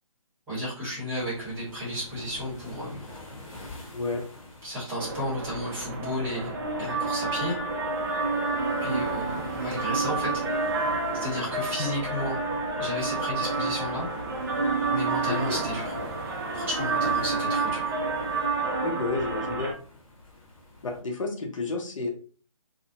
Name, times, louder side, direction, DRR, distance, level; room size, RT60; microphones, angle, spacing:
voice 1, 0.5-3.0 4.6-6.5 6.8-7.6 8.8-10.6 11.1-12.4 12.8-14.1 14.9-15.9 16.5-17.9, left 1 dB, 10° right, -7 dB, 1.0 m, -33 dB
sound 1, 1.2-21.0, left 2 dB, 25° left, 1.1 m, -47 dB
voice 2, 3.9-4.2 15.3-15.6 18.8-19.7 20.8-22.1, left 3 dB, 65° left, 2 dB, 0.6 m, -31 dB
sound 2, 5.0-19.7, right 3 dB, 35° right, 0.5 m, -29 dB
2.4 x 2.1 x 2.6 m, 0.41 s
figure-of-eight pair, 150°, 18 cm